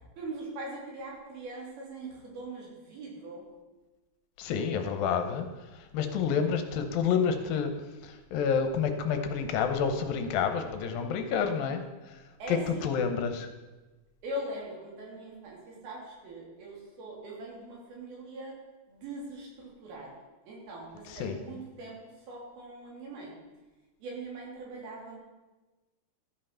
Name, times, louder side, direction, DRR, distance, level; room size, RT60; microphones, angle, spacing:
voice 1, 0.2-3.4 12.4-12.9 14.2-18.5 18.9-22.0 22.3-23.3 24.0-25.2, right 1 dB, 85° right, -3 dB, 4.5 m, -41 dB
voice 2, 4.4-5.5 5.9-7.7 8.0-11.8 12.1-12.2 12.5-13.5 21.1-21.4, left 6 dB, 80° left, 7 dB, 2.6 m, -29 dB
13.5 x 5.6 x 5.7 m, 1.2 s
omnidirectional pair, 4.2 m